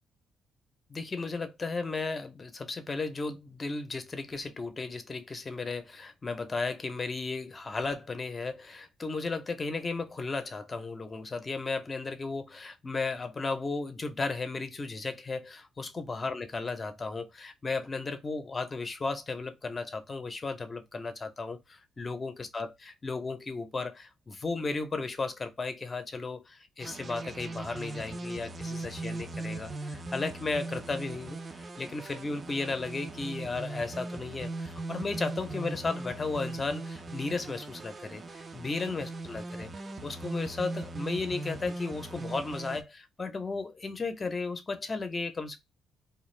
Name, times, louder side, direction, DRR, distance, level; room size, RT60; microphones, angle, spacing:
voice 1, 0.9-45.6, left 3 dB, 30° left, 0.6 m, -35 dB
sound 1, 26.8-42.8, right 2 dB, 35° right, 0.5 m, -39 dB
2.4 x 2.2 x 3.1 m
cardioid pair, 90°, 0 cm